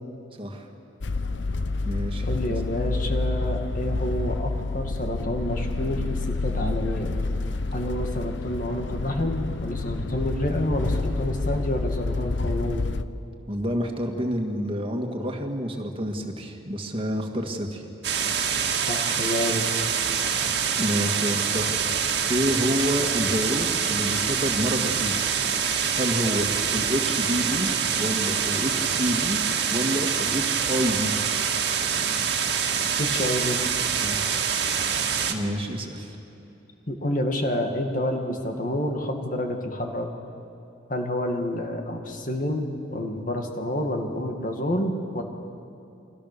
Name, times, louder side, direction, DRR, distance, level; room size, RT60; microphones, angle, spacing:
voice 1, 0.4-0.7 1.8-2.3 13.5-17.8 20.8-21.7 22.3-25.3 25.9-27.7 28.0-29.4 29.7-31.2 34.0-34.4 35.3-36.2, equal, 30° right, 2 dB, 2.1 m, -28 dB
sound 1, 1.0-13.0, left 3 dB, 75° left, 0.8 m, -28 dB
voice 2, 2.3-7.1 7.7-12.9 18.9-19.7 33.0-33.6 36.9-40.1 40.9-45.2, left 1 dB, 45° left, 3 dB, 2.2 m, -29 dB
sound 2, 18.0-35.3, right 7 dB, 60° right, 2.0 m, -25 dB
29.5 x 23.5 x 6.9 m, 2.8 s
head